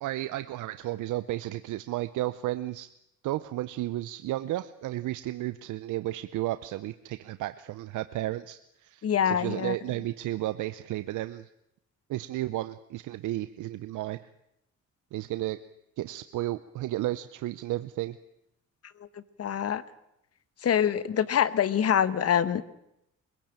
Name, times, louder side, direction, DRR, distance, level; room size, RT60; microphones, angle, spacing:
voice 1, 0.0-2.9 3.2-11.5 12.1-14.2 15.1-15.6 16.0-18.2, right 15 dB, 80° right, 13 dB, 0.7 m, -33 dB
voice 2, 9.0-9.8 19.4-19.8 20.6-22.6, left 9 dB, 55° left, 16 dB, 1.2 m, -25 dB
23.0 x 16.0 x 8.9 m, 0.83 s
cardioid pair, 90°, 30 cm